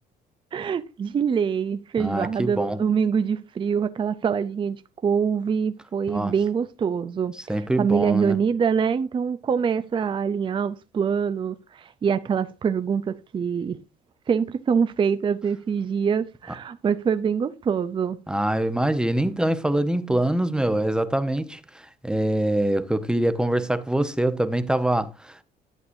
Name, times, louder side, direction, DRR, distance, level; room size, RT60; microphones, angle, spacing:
voice 1, 0.5-13.8 14.3-18.2, right 6 dB, 30° right, 0.5 m, -25 dB
voice 2, 2.0-2.8 6.1-6.3 7.5-8.4 18.3-25.4, right 1 dB, 5° right, 0.9 m, -24 dB
11.5 x 7.9 x 2.6 m
cardioid pair, 110°, 17 cm